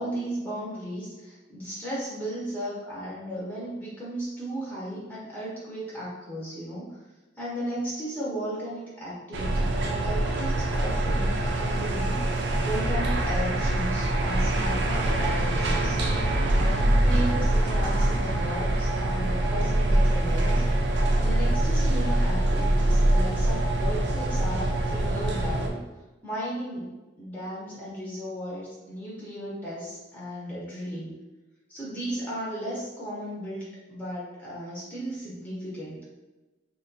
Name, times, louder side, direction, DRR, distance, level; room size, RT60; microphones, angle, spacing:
voice 1, 0.0-6.9 7.4-12.2 12.6-16.0 16.5-20.6 21.2-25.8 26.2-26.9 27.2-31.1 31.7-36.0, equal, 10° left, -7 dB, 0.7 m, -35 dB
sound 1, 9.3-25.7, right 1 dB, 70° right, 0.5 m, -24 dB
3.2 x 2.3 x 3.9 m, 1.1 s
head